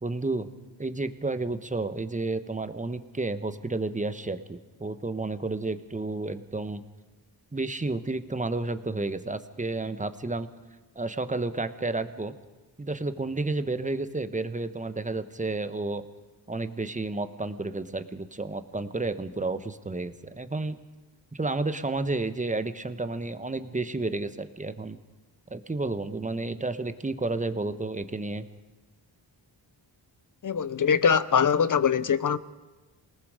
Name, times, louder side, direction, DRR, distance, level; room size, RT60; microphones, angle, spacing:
voice 1, 0.0-0.5 0.8-6.8 7.5-10.5 10.9-12.3 12.8-16.0 16.5-20.8 21.3-25.0 25.5-28.5, right 2 dB, 15° right, 1.2 m, -31 dB
voice 2, 30.4-32.4, left 7 dB, 45° left, 0.9 m, -23 dB
28.0 x 19.0 x 5.1 m
cardioid pair, 80°, 44 cm